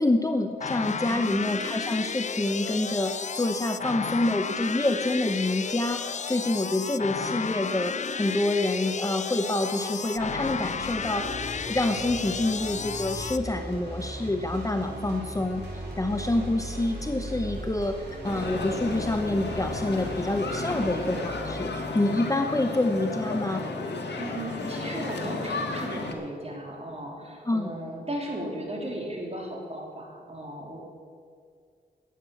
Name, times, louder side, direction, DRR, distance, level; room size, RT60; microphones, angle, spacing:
voice 1, 0.0-11.3 11.7-23.6 27.5-27.7, left 2 dB, 20° left, 6 dB, 0.8 m, -27 dB
sound 1, 0.6-13.4, left 6 dB, 40° left, 0.4 m, -33 dB
voice 2, 1.0-1.5 14.7-15.3 24.2-30.8, right 1 dB, 35° right, -1 dB, 3.5 m, -36 dB
sound 2, 10.1-21.3, right 1 dB, 75° right, 3.6 m, -38 dB
sound 3, 18.2-26.1, left 3 dB, 75° left, 1.7 m, -33 dB
11.5 x 9.0 x 7.1 m, 2.1 s
cardioid pair, 60°, 18 cm